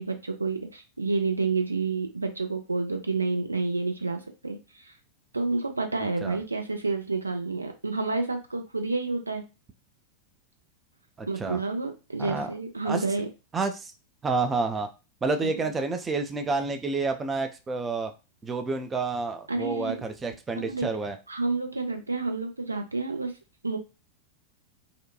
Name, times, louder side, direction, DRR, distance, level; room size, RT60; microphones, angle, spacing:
voice 1, 0.0-4.6 4.8-4.9 5.3-9.4 11.3-13.3 15.4-15.5 19.5-20.0 20.6-20.9 21.3-23.3 23.6-23.8, right 3 dB, 80° right, 4 dB, 0.5 m, -29 dB
voice 2, 11.2-11.6 12.2-12.5 12.9-13.1 13.5-13.9 14.2-14.9 15.2-18.1 18.4-21.2, right 3 dB, 15° right, 6 dB, 0.4 m, -29 dB
2.5 x 2.2 x 2.6 m, 0.28 s
figure-of-eight pair, 90°, 0 cm